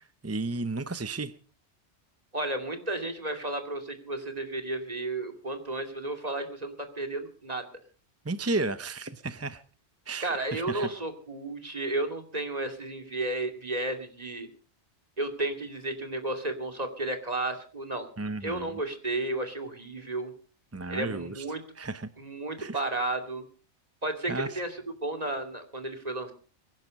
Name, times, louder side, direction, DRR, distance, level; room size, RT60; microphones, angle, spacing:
voice 1, 0.2-1.3 8.2-9.6 10.1-10.9 18.2-18.8 20.7-21.4 21.8-22.1 22.6-22.8 24.3-24.6, right 3 dB, 20° right, 12 dB, 0.5 m, -33 dB
voice 2, 2.3-7.7 10.2-14.5 15.2-18.1 18.4-20.3 20.9-21.6 22.2-23.4 24.0-26.3, right 2 dB, 35° right, 6 dB, 2.6 m, -33 dB
22.5 x 11.0 x 5.2 m, 0.40 s
omnidirectional pair, 1.2 m